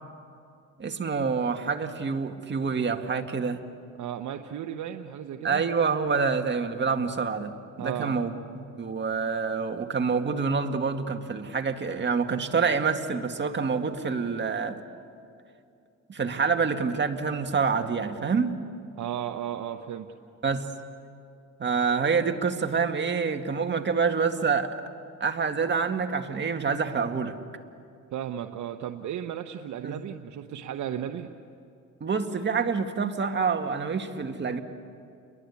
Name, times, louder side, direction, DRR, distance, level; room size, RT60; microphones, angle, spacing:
voice 1, 0.8-3.6 5.4-7.5 7.8-8.3 8.8-14.8 16.1-18.6 20.4-20.7 21.6-24.7 25.2-27.4 29.8-30.0 32.0-34.6, right 5 dB, 40° right, 5 dB, 2.0 m, -27 dB
voice 2, 4.0-5.6 7.8-8.1 19.0-20.1 28.1-31.3, right 10 dB, 75° right, 5 dB, 1.1 m, -34 dB
30.0 x 22.5 x 8.5 m, 2.5 s
cardioid pair, 90°, 30 cm